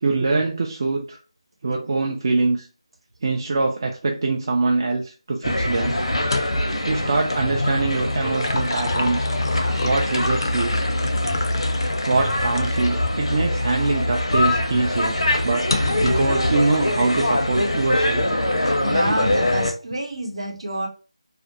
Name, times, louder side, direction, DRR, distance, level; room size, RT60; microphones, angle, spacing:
voice 1, 0.0-1.2 1.6-2.7 3.2-6.0 6.9-9.3 9.8-10.8 12.1-15.2 15.4-15.7 16.0-18.3, right 3 dB, 45° right, 1 dB, 0.3 m, -23 dB
sound 1, 5.4-19.7, left 1 dB, 85° left, 0.7 m, -23 dB
sound 2, 6.2-6.8 8.1-13.0 13.6-13.7 15.7-16.3, left 3 dB, 50° left, 0.4 m, -30 dB
voice 2, 18.8-20.9, right 1 dB, 65° right, 3 dB, 0.7 m, -27 dB
2.4 x 2.1 x 2.9 m, 0.35 s
figure-of-eight pair, 160°, 3 cm